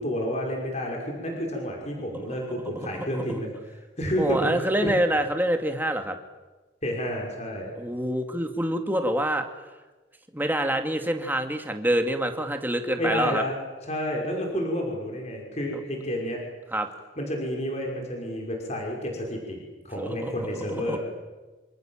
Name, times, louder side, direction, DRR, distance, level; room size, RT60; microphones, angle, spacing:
voice 1, 0.0-3.5 4.0-4.9 6.8-7.7 13.0-13.5 13.8-16.4 17.2-21.0, equal, 35° left, 0 dB, 5.8 m, -30 dB
voice 2, 2.7-3.4 4.2-6.2 7.8-9.5 10.3-13.4 16.7-16.9 20.0-20.3 20.7-21.0, right 1 dB, 10° right, 5 dB, 2.4 m, -26 dB
27.5 x 27.0 x 7.5 m, 1.2 s
head